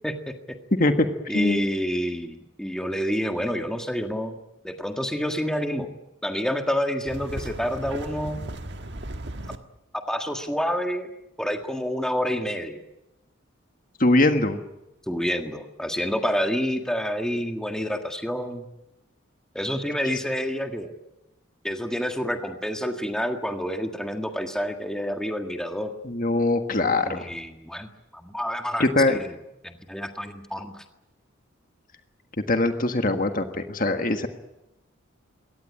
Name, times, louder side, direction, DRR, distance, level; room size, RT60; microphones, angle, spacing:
voice 1, 0.0-0.6 1.3-4.4 4.6-5.9 6.2-8.4 10.1-11.1 11.4-12.8 15.1-18.7 19.5-20.9 21.6-25.9 27.0-29.4 29.6-30.8, equal, 5° left, 4 dB, 1.7 m, -28 dB
sound 1, 7.0-9.6, right 1 dB, 55° right, 1.6 m, -36 dB
voice 2, 14.0-14.6 26.0-27.3 28.8-29.2 32.5-34.3, left 2 dB, 45° left, 6 dB, 1.6 m, -22 dB
23.5 x 18.0 x 9.9 m, 0.92 s
head